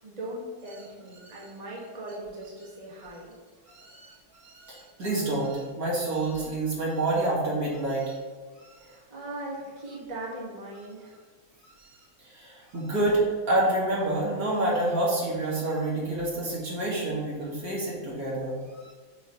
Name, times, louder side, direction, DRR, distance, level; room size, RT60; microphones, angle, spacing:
voice 1, 0.0-3.4 8.7-11.2, right 1 dB, 25° right, -6 dB, 1.2 m, -39 dB
voice 2, 3.7-4.1 4.4-8.2 8.6-8.9 11.8-11.9 12.2-18.9, right 2 dB, 45° right, -6 dB, 2.2 m, -28 dB
6.9 x 3.2 x 5.8 m, 1.5 s
omnidirectional pair, 2.3 m